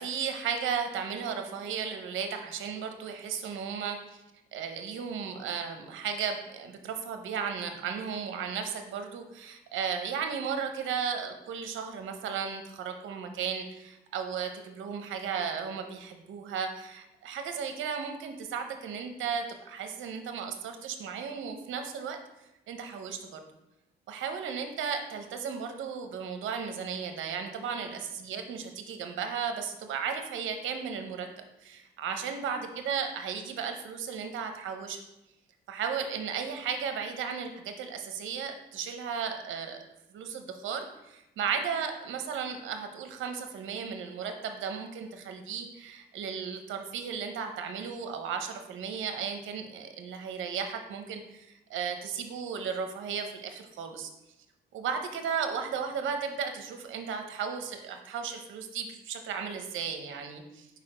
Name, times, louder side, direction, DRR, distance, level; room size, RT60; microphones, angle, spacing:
voice 1, 0.0-4.2 4.5-22.2 22.7-23.4 24.1-31.3 31.6-35.0 35.7-39.8 40.1-54.1 54.7-60.7, right 6 dB, 80° right, 6 dB, 0.8 m, -35 dB
4.7 x 4.2 x 4.9 m, 0.92 s
cardioid pair, 90°, 20 cm